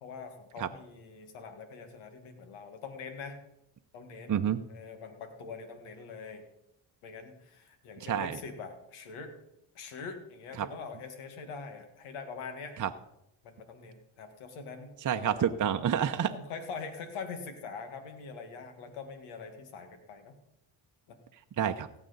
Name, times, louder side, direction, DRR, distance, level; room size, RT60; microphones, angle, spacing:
voice 1, 0.0-3.4 3.9-6.4 7.0-9.3 9.7-12.8 13.4-15.6 16.3-20.3 21.1-21.2, left 5 dB, 90° left, 7 dB, 1.8 m, -43 dB
voice 2, 4.3-4.6 8.0-8.4 12.8-12.9 15.0-16.3 21.6-21.9, right 9 dB, 40° right, 6 dB, 0.8 m, -28 dB
17.0 x 7.9 x 4.0 m, 0.81 s
supercardioid pair, 60°, 49 cm